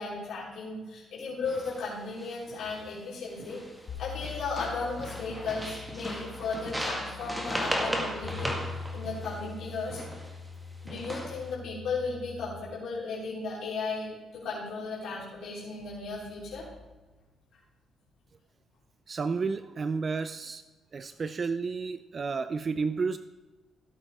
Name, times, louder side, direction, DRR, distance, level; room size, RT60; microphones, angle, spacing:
voice 1, 0.0-3.6 4.0-8.6 8.9-10.0 10.8-16.7, left 4 dB, 75° left, -6 dB, 3.6 m, -35 dB
sound 1, 1.4-1.8 2.2-2.8 3.4-3.9 4.2-10.4 10.9-11.5, equal, 5° right, 1.8 m, -36 dB
sound 2, 3.9-12.6, left 6 dB, 55° left, 2.3 m, -43 dB
voice 2, 19.1-20.6 20.9-23.2, right 4 dB, 40° right, 12 dB, 0.4 m, -31 dB
16.5 x 8.3 x 3.6 m, 1.2 s
cardioid pair, 90°, 0 cm